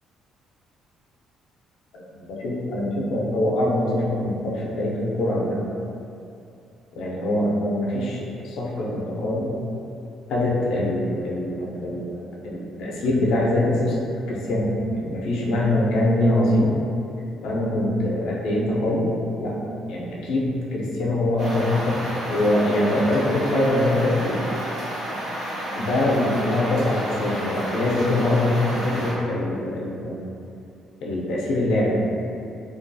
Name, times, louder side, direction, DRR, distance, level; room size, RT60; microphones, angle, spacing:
voice 1, 2.4-5.6 7.0-9.5 10.3-16.8 17.4-19.1 19.4-19.6 19.9-24.4 25.8-30.2 31.0-32.1, left 1 dB, 70° left, -4 dB, 0.4 m, -23 dB
sound 1, 21.4-29.1, equal, 90° right, 1.2 m, -31 dB
2.6 x 2.3 x 2.2 m, 2.5 s
cardioid pair, 170°, 0 cm